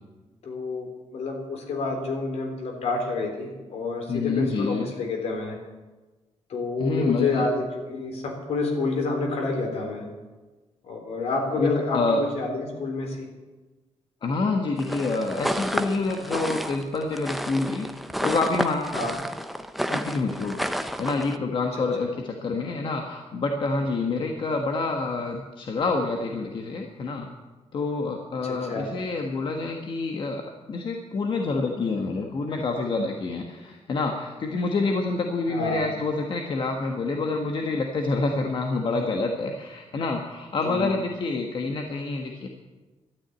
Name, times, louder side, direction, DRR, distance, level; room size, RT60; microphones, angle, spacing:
voice 1, 0.4-5.6 6.5-10.1 10.8-13.3 18.9-19.1 22.0-22.1 28.4-28.9 35.5-35.9 40.6-40.9, left 3 dB, 70° left, 2 dB, 3.5 m, -29 dB
voice 2, 4.1-4.9 6.8-7.4 11.6-12.2 14.2-17.9 18.2-19.0 19.9-27.3 27.7-30.4 30.7-42.5, left 3 dB, 45° left, 2 dB, 1.2 m, -27 dB
sound 1, 14.8-21.4, equal, ahead, 0.6 m, -31 dB
12.5 x 9.8 x 9.0 m, 1.2 s
wide cardioid pair, 170°, 11 cm